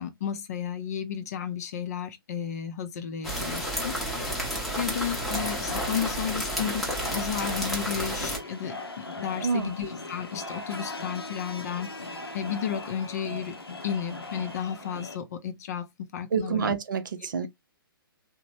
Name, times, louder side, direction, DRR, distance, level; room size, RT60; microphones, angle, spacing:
voice 1, 0.0-4.0 4.8-6.9 7.1-13.6 13.8-16.7, left 8 dB, 40° left, 0.5 m, -33 dB
sound 1, 3.2-8.4, equal, ahead, 0.7 m, -31 dB
sound 2, 5.3-15.2, left 2 dB, 85° left, 0.6 m, -39 dB
voice 2, 9.4-9.7 16.3-17.5, right 6 dB, 55° right, 0.5 m, -27 dB
3.0 x 2.1 x 2.7 m
figure-of-eight pair, 125°, 12 cm